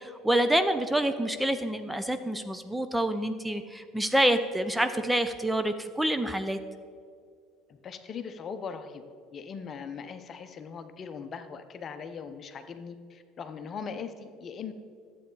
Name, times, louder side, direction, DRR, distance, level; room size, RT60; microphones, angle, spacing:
voice 1, 0.0-6.6, right 1 dB, 5° right, 9 dB, 0.6 m, -27 dB
voice 2, 7.7-9.0 9.3-14.7, left 6 dB, 40° left, 9 dB, 0.8 m, -40 dB
11.5 x 8.4 x 3.9 m, 2.3 s
hypercardioid pair, 70°, 0 cm